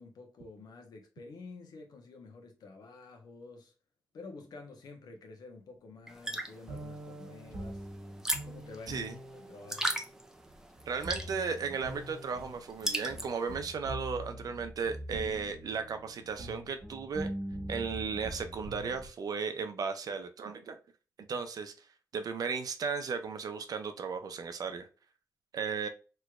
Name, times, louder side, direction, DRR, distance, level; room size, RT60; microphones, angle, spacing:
voice 1, 0.0-3.7 4.1-7.9 8.4-9.9, left 3 dB, 80° left, 1.0 m, -49 dB
sound 1, 6.1-13.5, right 1 dB, 10° right, 0.6 m, -38 dB
sound 2, 6.7-19.1, right 1 dB, 45° right, 1.1 m, -43 dB
voice 2, 10.9-17.3 17.7-20.8 21.3-21.7 22.1-24.9 25.5-25.9, right 5 dB, 70° right, 0.6 m, -35 dB
3.3 x 3.0 x 2.3 m
cardioid pair, 80°, 7 cm